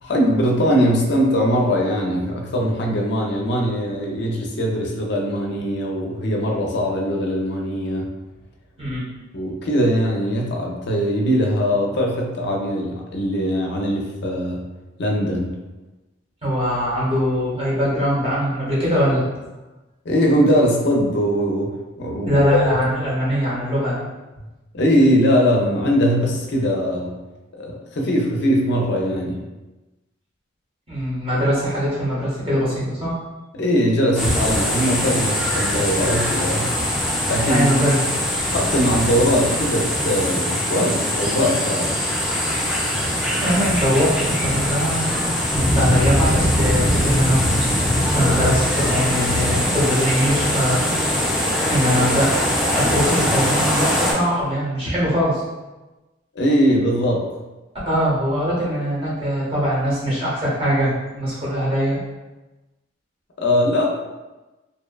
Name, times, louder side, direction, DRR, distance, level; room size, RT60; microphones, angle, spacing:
voice 1, 0.0-8.1 9.3-14.7 15.0-15.6 20.1-22.7 24.7-27.2 27.6-29.4 33.5-36.7 37.3-37.7 38.5-41.9 56.4-57.3 63.4-63.9, equal, 60° left, 0 dB, 0.4 m, -21 dB
voice 2, 16.4-19.2 22.3-24.0 30.9-33.2 37.5-38.0 43.4-45.1 45.5-51.2 51.7-52.3 52.6-55.4 57.8-62.0, equal, 30° right, -7 dB, 0.9 m, -22 dB
sound 1, 34.1-54.1, left 1 dB, 5° right, 0.4 m, -21 dB
2.7 x 2.1 x 2.2 m, 1.1 s
head